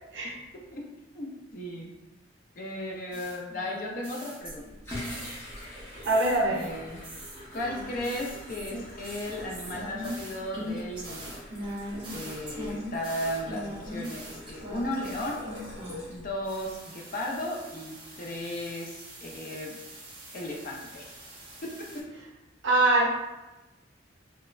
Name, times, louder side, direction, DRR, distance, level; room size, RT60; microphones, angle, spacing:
voice 1, 1.1-1.9 2.6-4.7 6.5-7.0 7.5-11.4 12.1-15.4 16.1-19.8 20.3-21.2 21.6-22.0, left 1 dB, 45° left, -1 dB, 0.4 m, -35 dB
sound 1, 3.1-5.6 6.0-16.1 16.4-22.0, equal, 25° right, 0.6 m, -42 dB
sound 2, 4.4-16.8, left 1 dB, 15° left, 0.8 m, -44 dB
voice 2, 6.0-6.6 22.6-23.1, right 2 dB, 70° right, -2 dB, 0.7 m, -23 dB
3.0 x 2.1 x 2.3 m, 1.1 s
head